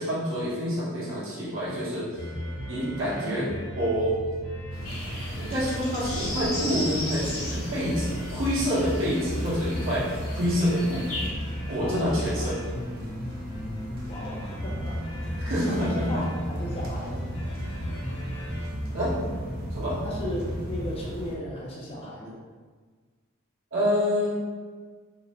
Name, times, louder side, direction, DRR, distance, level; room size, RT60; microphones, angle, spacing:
voice 1, 0.0-2.1 2.7-3.5 3.8-4.2 5.4-11.0 11.7-12.6 15.4-16.2 18.9-19.1 19.7-20.0 23.7-24.3, equal, 65° right, -8 dB, 0.9 m, -27 dB
sound 1, 2.2-21.1, equal, 55° left, 1.0 m, -35 dB
sound 2, 4.7-21.4, right 1 dB, 45° right, 0.4 m, -39 dB
sound 3, 4.8-11.3, left 1 dB, 85° left, 0.7 m, -37 dB
voice 2, 11.8-12.5 14.0-17.3 20.0-22.3, left 1 dB, 30° left, -3 dB, 0.4 m, -36 dB
2.5 x 2.0 x 2.8 m, 1.5 s
head